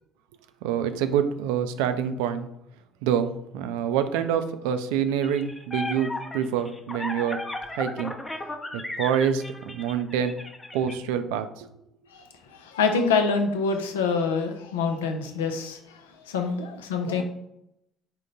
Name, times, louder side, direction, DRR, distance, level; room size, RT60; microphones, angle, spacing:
voice 1, 0.6-2.5 3.0-3.3 3.5-7.4 7.7-8.1 8.7-10.4 10.7-11.7, right 8 dB, 75° right, 9 dB, 0.3 m, -26 dB
sound 1, 5.2-10.9, left 2 dB, 20° left, 0.6 m, -35 dB
voice 2, 12.6-15.8 16.3-17.2, left 5 dB, 85° left, 5 dB, 0.4 m, -25 dB
3.7 x 2.2 x 3.8 m, 0.80 s
hypercardioid pair, 55°, 0 cm